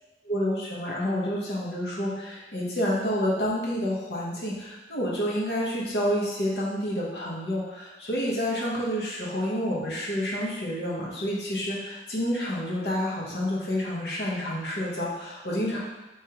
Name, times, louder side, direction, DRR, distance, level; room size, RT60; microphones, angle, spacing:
voice 1, 0.3-15.8, equal, 75° left, -5 dB, 1.0 m, -29 dB
3.5 x 3.1 x 2.8 m, 1.1 s
head